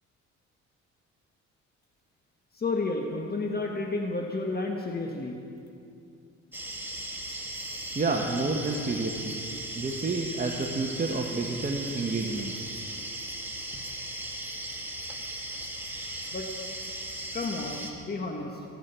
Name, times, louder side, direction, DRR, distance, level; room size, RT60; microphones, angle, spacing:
voice 1, 2.5-5.4 16.3-16.5 17.3-18.6, left 3 dB, 30° left, 2 dB, 1.4 m, -31 dB
sound 1, 6.5-17.9, right 1 dB, 5° right, 2.0 m, -37 dB
voice 2, 7.9-9.4 9.7-12.6, right 3 dB, 30° right, 2 dB, 1.3 m, -29 dB
23.0 x 7.7 x 6.9 m, 2.5 s
cardioid pair, 90°, 30 cm